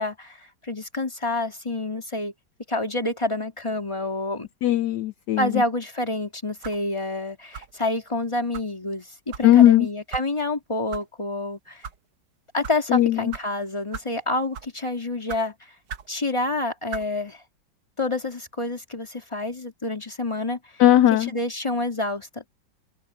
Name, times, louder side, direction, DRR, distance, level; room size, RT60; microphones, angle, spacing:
voice 1, 0.0-2.3 2.7-4.5 5.4-11.9 12.5-15.5 16.1-17.4 18.0-20.6 21.1-22.5, left 2 dB, 15° left, 2.9 m, -28 dB
voice 2, 4.6-5.5 9.4-9.9 12.9-13.3 20.8-21.3, left 13 dB, 70° left, 1.2 m, -17 dB
sound 1, 6.6-6.9 7.5-7.8 8.5-8.7 9.3-9.5 10.1-10.3 10.9-11.0 11.7-12.0 12.6-12.8 13.3-13.4 13.9-14.1 14.5-14.8 15.3-15.4 15.9-16.1 16.9-17.1, right 6 dB, 60° right, 1.8 m, -37 dB
open air
omnidirectional pair, 2.1 m